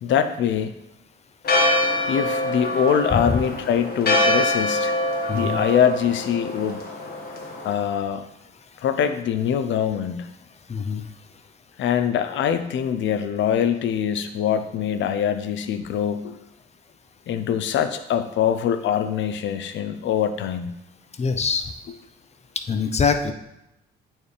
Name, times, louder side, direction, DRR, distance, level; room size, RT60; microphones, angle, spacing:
voice 1, 0.0-0.7 2.1-4.9 5.3-6.8 7.6-8.2 8.8-10.3 11.8-16.4 17.3-20.7, left 8 dB, 70° left, 9 dB, 0.6 m, -23 dB
Church bell, 1.4-7.7, left 1 dB, 50° left, 1.5 m, -24 dB
voice 2, 3.1-3.4 5.3-5.6 10.7-11.1 21.2-21.7 22.7-23.3, left 5 dB, 35° left, 7 dB, 0.7 m, -23 dB
8.8 x 4.5 x 3.3 m, 0.87 s
cardioid pair, 90°, 20 cm